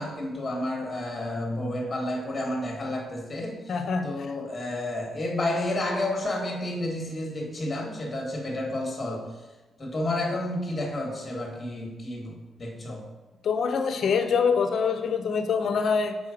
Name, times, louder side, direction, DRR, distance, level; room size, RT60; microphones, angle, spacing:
voice 1, 0.0-3.8 4.0-9.4 9.8-13.1, left 1 dB, 25° left, 1 dB, 1.3 m, -31 dB
voice 2, 3.7-4.3 13.4-16.2, left 5 dB, 55° left, 7 dB, 0.6 m, -25 dB
6.2 x 4.2 x 4.9 m, 1.2 s
cardioid pair, 140°, 0 cm